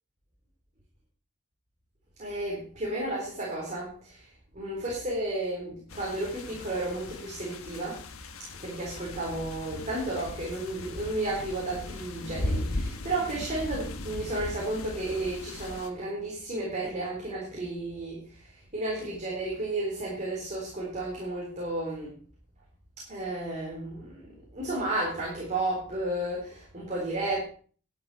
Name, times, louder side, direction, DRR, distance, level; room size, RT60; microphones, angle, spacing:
voice 1, 2.2-4.2 4.5-8.0 8.6-22.1 23.1-27.4, right 2 dB, 35° right, -4 dB, 3.9 m, -33 dB
sound 1, 5.9-15.9, left 1 dB, 65° left, 1.3 m, -38 dB
12.0 x 9.3 x 4.8 m, 0.43 s
head